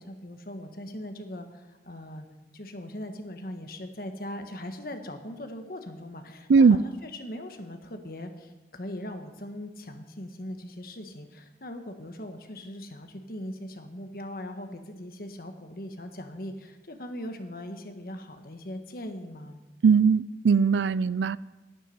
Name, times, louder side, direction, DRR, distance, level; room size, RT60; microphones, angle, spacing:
voice 1, 0.0-2.3 2.5-19.6, left 1 dB, 55° left, 6 dB, 1.5 m, -40 dB
voice 2, 19.8-21.4, right 5 dB, 85° right, 20 dB, 0.4 m, -19 dB
11.5 x 7.4 x 9.8 m, 1.1 s
head